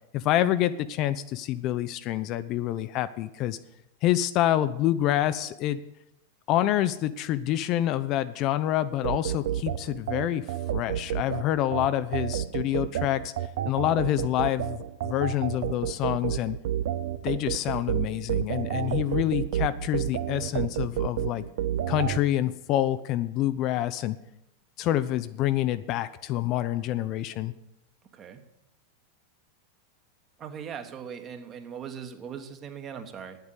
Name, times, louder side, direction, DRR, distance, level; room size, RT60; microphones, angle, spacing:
voice 1, 0.1-3.6 4.0-5.8 6.5-10.4 10.7-13.3 13.7-16.6 17.2-21.4 21.9-24.2 24.8-27.5, left 13 dB, 40° left, 12 dB, 0.5 m, -27 dB
sound 1, 9.0-22.2, right 11 dB, 55° right, 0.6 m, -30 dB
voice 2, 30.4-33.4, right 7 dB, 30° right, 7 dB, 1.4 m, -39 dB
9.5 x 8.1 x 9.1 m, 0.88 s
figure-of-eight pair, 90°, 0 cm